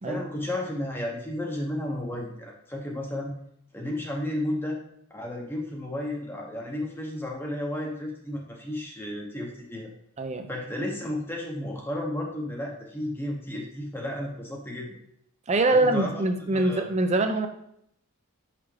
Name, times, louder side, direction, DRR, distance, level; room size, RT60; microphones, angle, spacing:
voice 1, 0.0-3.3 3.7-4.8 5.1-9.9 10.5-15.0 15.7-16.2 16.5-16.9, left 1 dB, 10° left, -1 dB, 0.8 m, -33 dB
voice 2, 10.2-10.5 15.5-17.5, right 2 dB, 30° right, 7 dB, 0.5 m, -24 dB
6.3 x 5.8 x 3.2 m, 0.73 s
head